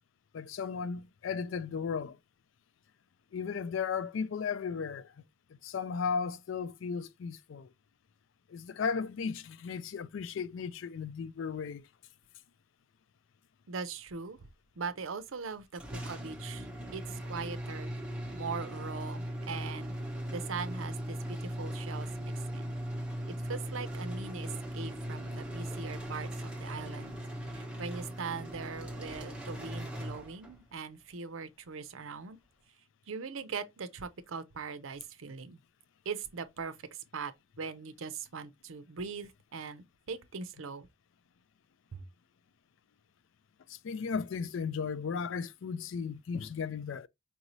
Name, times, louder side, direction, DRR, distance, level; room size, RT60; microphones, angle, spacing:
voice 1, 0.3-2.2 3.3-5.1 5.6-7.7 8.5-11.9 43.7-47.1, left 6 dB, 65° left, 0.4 m, -35 dB
voice 2, 13.7-14.5 14.8-17.9 18.3-20.0 20.3-22.7 23.3-27.2 27.5-32.4 33.1-35.6 36.1-36.7 37.1-37.3 37.6-40.9 41.9-42.0, right 5 dB, 75° right, 0.6 m, -41 dB
sound 1, 15.8-30.7, equal, 5° right, 1.0 m, -39 dB
4.8 x 2.7 x 3.0 m
head